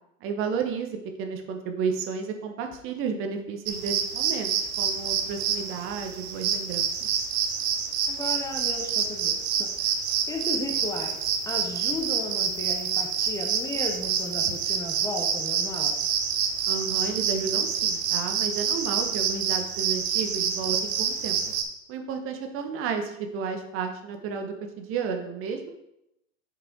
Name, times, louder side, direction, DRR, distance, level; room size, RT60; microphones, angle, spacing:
voice 1, 0.2-6.9 16.7-21.4 21.9-25.7, right 6 dB, 35° right, 5 dB, 1.0 m, -32 dB
sound 1, 3.6-21.6, right 7 dB, 55° right, 1.1 m, -27 dB
voice 2, 8.1-9.9 10.3-16.1, left 2 dB, 10° left, 1 dB, 0.7 m, -35 dB
7.5 x 5.1 x 3.7 m, 0.83 s
hypercardioid pair, 105°, 39 cm